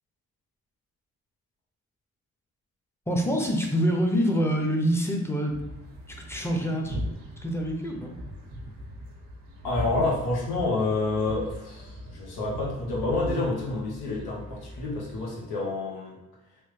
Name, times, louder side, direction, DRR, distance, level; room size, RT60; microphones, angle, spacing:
voice 1, 3.1-5.7 6.1-7.0 7.4-8.2, equal, 5° left, 1 dB, 0.7 m, -26 dB
sound 1, 5.5-15.4, equal, 85° right, 0.8 m, -39 dB
voice 2, 9.6-16.2, left 2 dB, 75° left, -3 dB, 1.0 m, -28 dB
3.2 x 2.1 x 3.1 m, 0.96 s
supercardioid pair, 50°, 38 cm